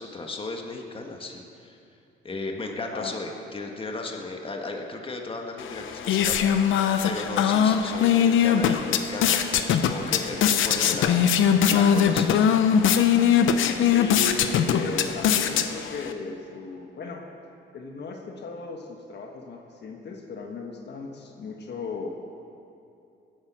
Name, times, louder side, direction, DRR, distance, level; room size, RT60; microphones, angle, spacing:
voice 1, 0.0-1.8 2.2-6.5 7.0-11.2 11.7-12.5, left 2 dB, 25° left, 2 dB, 1.6 m, -35 dB
sound 1, 5.6-16.1, left 8 dB, 80° left, 0.8 m, -21 dB
voice 2, 13.9-17.3 17.7-22.1, left 4 dB, 60° left, 2 dB, 1.4 m, -36 dB
15.5 x 10.5 x 6.2 m, 2.7 s
cardioid pair, 90°, 20 cm